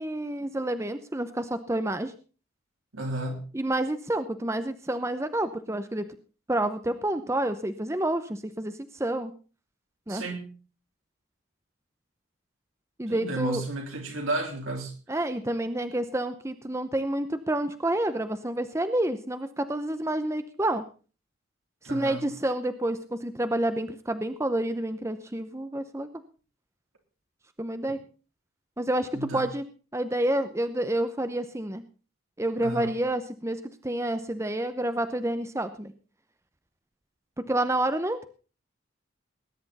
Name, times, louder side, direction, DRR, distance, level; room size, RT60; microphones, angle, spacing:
voice 1, 0.0-2.1 3.5-6.1 6.5-9.3 10.1-10.2 13.0-13.6 15.1-20.8 21.8-26.1 27.6-28.0 28.8-29.6 29.9-31.8 32.4-35.9 37.4-38.2, right 1 dB, 15° right, 10 dB, 0.7 m, -29 dB
voice 2, 2.9-3.4 10.1-10.5 13.1-14.9 21.8-22.3 29.1-29.4 32.6-32.9, right 2 dB, 80° right, 3 dB, 3.6 m, -32 dB
19.5 x 10.5 x 4.2 m, 0.36 s
head